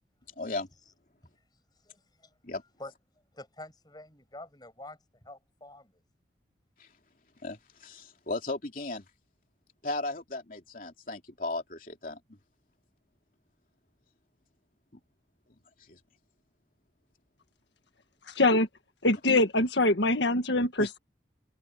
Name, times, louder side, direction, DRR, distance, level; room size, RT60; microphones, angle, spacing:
voice 1, 0.4-0.7 2.4-2.6 6.8-6.9 7.4-9.0 9.8-12.4 14.9-15.0 15.9-16.0 20.8-20.9, left 2 dB, 45° left, 3.1 m, -36 dB
voice 2, 1.8-2.3 2.8-2.9 3.3-5.0 5.2-5.9, left 1 dB, 20° left, 8.0 m, -47 dB
voice 3, 18.3-18.7 19.0-21.0, left 2 dB, 75° left, 1.7 m, -24 dB
open air
head